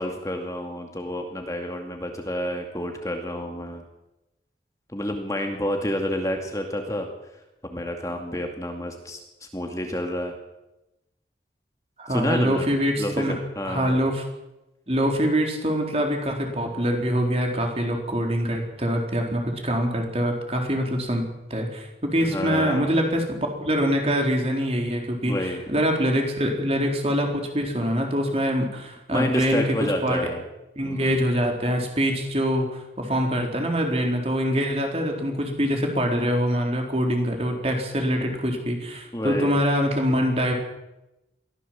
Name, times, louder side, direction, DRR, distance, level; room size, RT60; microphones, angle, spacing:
voice 1, 0.0-3.8 4.9-7.1 7.7-10.3 12.1-12.7 13.0-14.0 22.2-23.0 25.2-25.6 29.1-30.4 30.8-31.2 39.1-39.6, equal, 20° left, 3 dB, 2.3 m, -29 dB
voice 2, 12.0-13.3 13.7-14.2 14.9-21.2 21.5-29.7 30.0-30.2 30.8-40.5, equal, 35° right, 2 dB, 4.1 m, -24 dB
23.0 x 16.0 x 7.7 m, 0.94 s
head